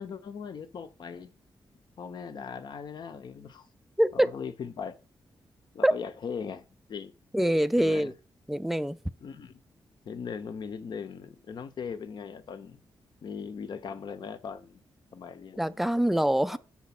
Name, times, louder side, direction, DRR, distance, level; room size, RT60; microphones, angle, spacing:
voice 1, 0.0-1.3 2.0-3.7 4.1-4.9 5.7-7.1 7.8-8.1 9.2-9.6 10.0-12.8 13.2-14.8 15.1-15.8 16.5-16.6, left 6 dB, 60° left, 0.8 m, -39 dB
voice 2, 4.0-4.3 5.8-5.9 7.3-8.1 8.5-9.0 15.6-16.6, right 1 dB, 5° right, 0.3 m, -24 dB
7.1 x 4.3 x 5.9 m
wide cardioid pair, 135°, 9 cm